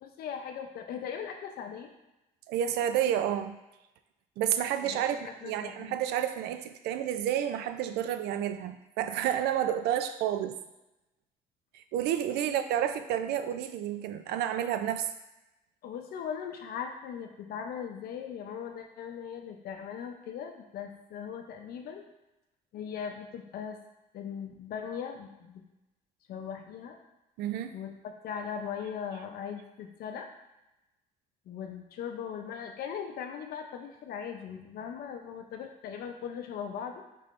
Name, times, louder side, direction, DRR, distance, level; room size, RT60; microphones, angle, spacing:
voice 1, 0.0-1.9 4.8-6.0 12.5-12.6 15.8-22.0 22.7-23.8 24.1-25.6 26.3-27.0 27.7-30.3 31.5-37.0, left 7 dB, 65° left, 4 dB, 0.6 m, -39 dB
voice 2, 2.5-3.6 4.4-10.6 11.7-15.1 27.4-27.8, right 10 dB, 80° right, 10 dB, 0.4 m, -30 dB
5.4 x 3.4 x 2.5 m, 0.97 s
cardioid pair, 110°, 17 cm